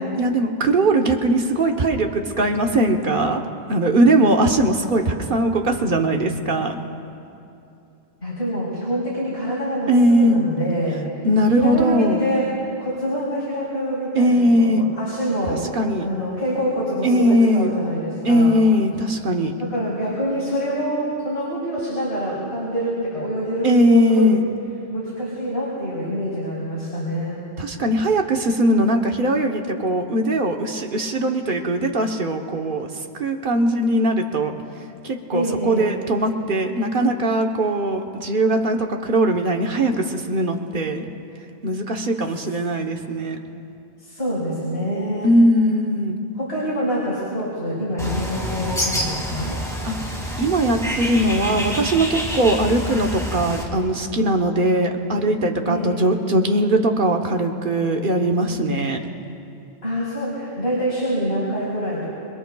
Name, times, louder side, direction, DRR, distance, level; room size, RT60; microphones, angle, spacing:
voice 1, 0.2-3.4 3.7-6.8 9.9-10.4 11.2-12.2 14.1-14.9 15.7-16.1 17.0-17.7 18.2-19.5 23.6-24.4 27.6-32.9 33.2-34.5 35.0-41.0 41.6-43.4 45.2-46.2 49.8-50.0 50.4-59.0, right 1 dB, 55° right, 3 dB, 1.2 m, -20 dB
voice 2, 8.2-11.1 11.5-12.5 12.8-15.6 16.0-18.5 19.6-24.3 24.9-27.4 35.3-35.9 44.0-45.3 46.4-49.6 55.6-56.1 59.8-62.1, equal, 75° left, -8 dB, 4.2 m, -26 dB
Bird, 48.0-53.6, equal, 5° left, 2.2 m, -27 dB
27.0 x 22.0 x 2.3 m, 2.7 s
omnidirectional pair, 1.1 m